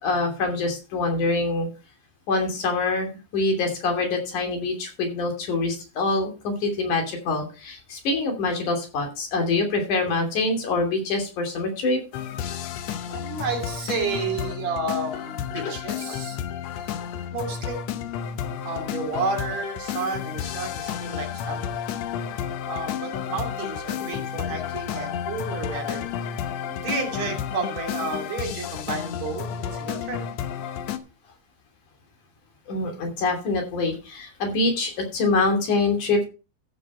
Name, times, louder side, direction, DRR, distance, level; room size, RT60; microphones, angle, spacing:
voice 1, 0.0-1.7 2.3-12.0 15.6-15.7 32.7-36.2, left 3 dB, 85° left, 3 dB, 4.4 m, -25 dB
sound 1, 12.1-31.0, left 9 dB, 70° left, 2.0 m, -31 dB
voice 2, 13.1-16.4 16.8-16.9 17.3-17.8 18.6-21.8 22.7-26.1 26.8-30.2, right 4 dB, 65° right, 2 dB, 3.9 m, -31 dB
14.5 x 6.7 x 4.4 m, 0.33 s
omnidirectional pair, 3.4 m